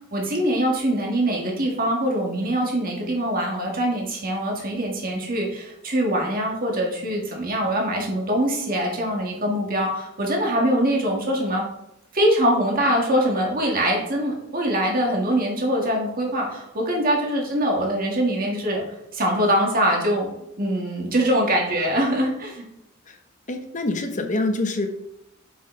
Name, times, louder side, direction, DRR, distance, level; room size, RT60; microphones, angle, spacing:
voice 1, 0.1-11.6 12.1-18.8 19.1-20.3 20.6-22.6, equal, 45° right, -1 dB, 1.9 m, -23 dB
voice 2, 23.5-24.9, left 2 dB, 40° left, 5 dB, 0.9 m, -25 dB
7.3 x 6.2 x 3.3 m, 0.82 s
head